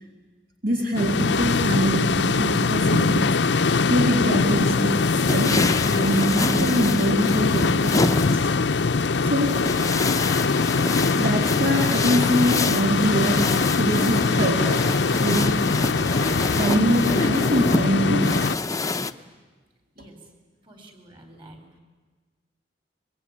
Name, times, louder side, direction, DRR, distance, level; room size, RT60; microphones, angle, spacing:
voice 1, 0.6-3.4 3.9-5.0 5.3-8.5 9.2-9.6 11.2-15.8 16.2-16.3 16.6-18.4, right 1 dB, 60° right, 2 dB, 2.2 m, -24 dB
sound 1, 0.9-18.6, left 4 dB, 75° left, 0.7 m, -22 dB
sound 2, 4.2-19.1, left 3 dB, 20° left, 0.7 m, -28 dB
voice 2, 20.6-21.8, right 1 dB, 30° right, 6 dB, 4.3 m, -48 dB
24.0 x 22.0 x 9.9 m, 1.4 s
head